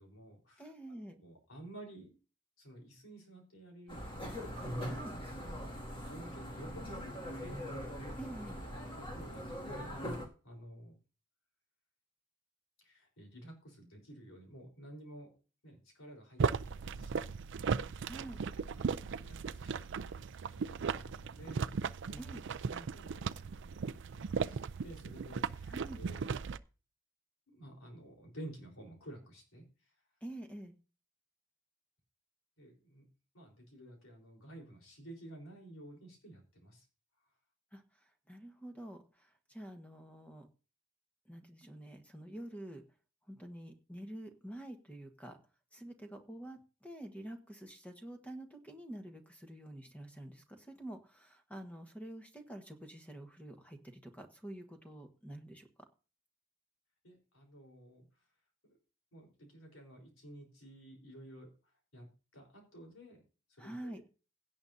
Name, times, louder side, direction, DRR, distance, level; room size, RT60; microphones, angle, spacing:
voice 1, 0.0-2.1 2.6-4.4 6.0-8.3 8.6-10.9 12.8-15.4 15.6-17.4 18.6-22.4 22.7-26.3 27.5-29.9 32.6-33.1 33.3-36.9 57.0-58.1 58.6-58.8 59.1-63.2 63.5-64.0, right 1 dB, 90° left, 1 dB, 4.0 m, -53 dB
voice 2, 0.6-1.1 4.8-5.1 8.2-8.6 18.0-18.4 22.2-22.4 25.7-26.0 30.2-30.7 37.7-37.8 38.3-40.5 41.3-42.8 43.3-45.4 45.7-55.7 63.6-64.0, right 1 dB, 5° left, 5 dB, 1.3 m, -48 dB
sound 1, 3.9-10.3, equal, 25° left, 2.2 m, -42 dB
sound 2, 16.4-26.6, right 5 dB, 60° right, 0.4 m, -37 dB
16.5 x 8.5 x 2.7 m, 0.35 s
head